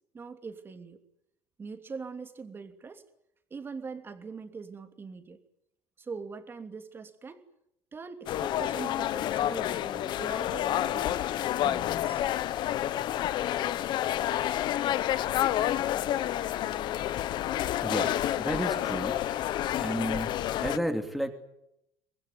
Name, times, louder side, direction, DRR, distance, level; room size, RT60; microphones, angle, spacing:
voice 1, 0.1-1.0 1.6-3.0 3.5-5.4 6.0-7.4 7.9-11.2 11.6-12.2, right 5 dB, 25° right, 7 dB, 3.0 m, -42 dB
sound 1, 8.3-20.8, left 12 dB, 50° left, 1.1 m, -29 dB
voice 2, 17.8-19.2 19.8-21.3, equal, ahead, 4 dB, 2.9 m, -32 dB
25.0 x 20.5 x 9.5 m, 0.80 s
cardioid pair, 130°, 10 cm